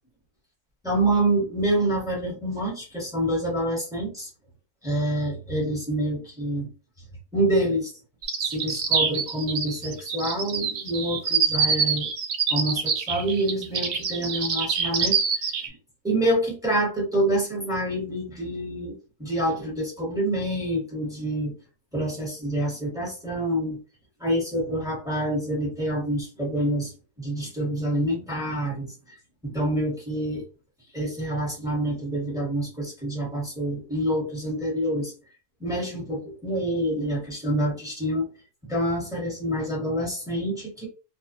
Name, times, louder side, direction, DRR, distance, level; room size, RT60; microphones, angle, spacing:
voice 1, 0.8-4.3 4.8-6.7 7.3-7.9 8.4-12.1 12.5-15.8 16.0-21.5 21.9-23.8 24.2-26.9 27.2-30.4 30.9-35.1 35.6-38.3 38.6-40.9, right 1 dB, 5° right, -4 dB, 0.9 m, -27 dB
sound 1, 8.2-15.7, right 6 dB, 65° right, 0.8 m, -25 dB
2.5 x 2.3 x 2.5 m, 0.35 s
omnidirectional pair, 1.7 m